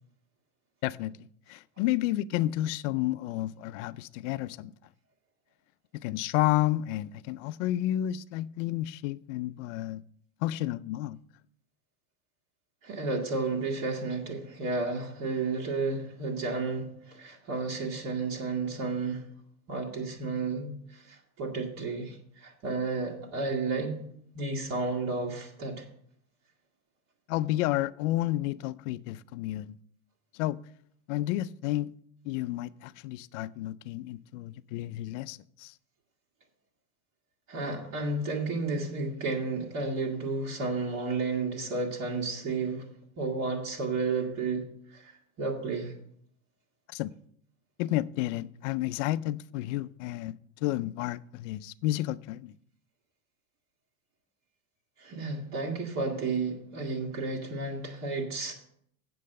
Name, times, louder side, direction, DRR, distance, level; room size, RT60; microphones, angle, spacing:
voice 1, 0.8-4.7 5.9-10.0 10.4-11.2 27.3-29.8 30.3-30.6 31.1-31.9 32.2-35.7 46.9-47.1 47.8-52.5, left 15 dB, 60° left, 0.5 m, -31 dB
voice 2, 12.8-19.3 19.7-24.0 24.3-25.8 37.5-42.9 43.2-45.9 55.0-58.5, right 3 dB, 40° right, 1.8 m, -32 dB
7.6 x 7.6 x 6.5 m
supercardioid pair, 140°, 43 cm